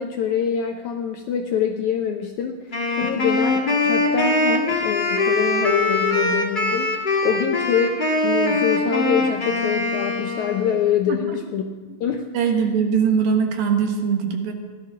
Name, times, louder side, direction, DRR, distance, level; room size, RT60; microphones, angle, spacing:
voice 1, 0.0-11.7 12.0-12.3, left 8 dB, 75° left, 4 dB, 1.8 m, -25 dB
Wind instrument woodwind instrument, 2.7-10.9, left 2 dB, 25° left, 1.0 m, -22 dB
voice 2, 11.1-11.4 12.3-14.5, right 6 dB, 75° right, 3 dB, 3.2 m, -21 dB
16.5 x 11.5 x 6.0 m, 1.5 s
omnidirectional pair, 4.3 m